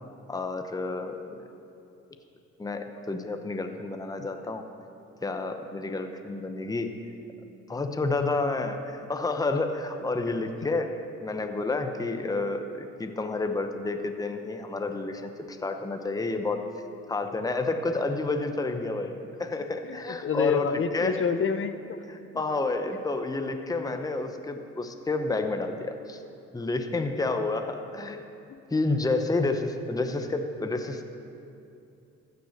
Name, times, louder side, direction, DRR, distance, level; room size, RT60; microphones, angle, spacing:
voice 1, 0.3-1.5 2.6-4.6 5.2-7.0 7.7-11.0 11.2-16.6 17.1-20.7 20.9-21.3 22.1-26.2 26.5-28.2 28.7-31.0, left 3 dB, 10° left, 6 dB, 0.8 m, -30 dB
voice 2, 19.8-22.0 28.5-28.6, left 6 dB, 45° left, 10 dB, 0.8 m, -28 dB
14.5 x 6.9 x 6.5 m, 2.6 s
cardioid pair, 90°, 30 cm